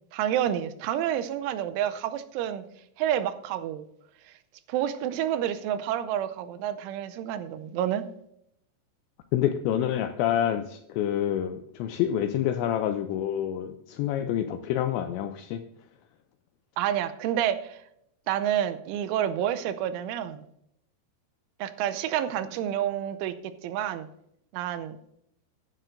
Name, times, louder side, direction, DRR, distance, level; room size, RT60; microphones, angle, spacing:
voice 1, 0.1-2.7 3.0-3.9 4.7-8.1 16.8-17.8 18.3-20.4 21.6-24.1 24.5-25.0, right 10 dB, 85° right, 11 dB, 3.1 m, -29 dB
voice 2, 9.3-15.6, left 10 dB, 80° left, 8 dB, 2.6 m, -27 dB
15.0 x 11.0 x 2.6 m, 0.77 s
omnidirectional pair, 5.6 m